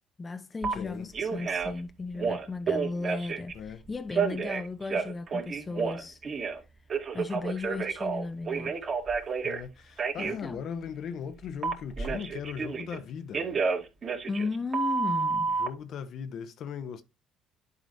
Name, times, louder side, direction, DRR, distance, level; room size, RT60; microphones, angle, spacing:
voice 1, 0.2-6.2 7.1-8.8 10.2-10.6 14.3-15.5, left 3 dB, 30° left, 0.7 m, -35 dB
Telephone, 0.6-0.7 1.1-1.8 2.1-3.5 4.1-6.6 6.9-9.6 10.0-10.3 11.6-13.0 13.3-15.7, right 5 dB, 45° right, 2.5 m, -30 dB
voice 2, 0.7-1.1 3.5-3.8 9.4-13.4 15.6-17.0, left 7 dB, 60° left, 1.0 m, -38 dB
11.0 x 5.0 x 2.7 m
hypercardioid pair, 55°, 0 cm